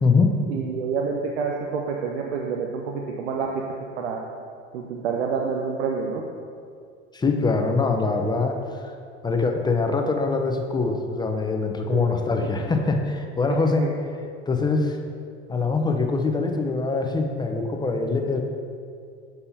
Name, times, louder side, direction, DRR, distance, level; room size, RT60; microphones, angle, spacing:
voice 1, 0.5-3.6 4.0-4.2 4.7-6.2 11.9-12.1 13.8-13.9, right 5 dB, 75° right, 1 dB, 0.6 m, -28 dB
voice 2, 7.1-8.9 9.2-13.9 14.5-15.0 15.5-18.4, left 3 dB, 15° left, 3 dB, 0.6 m, -23 dB
7.0 x 5.4 x 2.7 m, 2.3 s
hypercardioid pair, 80°, 33 cm